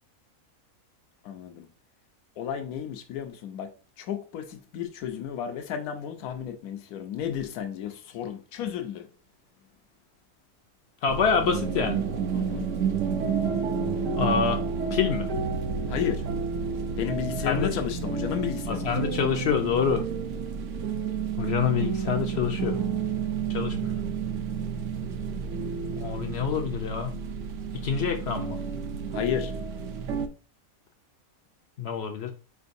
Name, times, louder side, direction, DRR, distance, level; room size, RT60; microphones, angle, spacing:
voice 1, 1.2-1.7 2.4-3.7 4.0-9.1 12.3-12.7 15.9-16.3 17.0-19.3 29.1-29.5, left 9 dB, 85° left, 1.1 m, -32 dB
voice 2, 11.0-12.0 14.1-14.6 14.9-15.3 17.4-17.7 18.7-20.0 21.4-22.8 23.5-24.0 25.9-27.2 27.7-28.6 31.8-32.3, left 6 dB, 65° left, 0.6 m, -26 dB
sound 1, 11.1-30.3, right 6 dB, 65° right, 0.9 m, -30 dB
4.5 x 3.5 x 2.5 m
omnidirectional pair, 1.5 m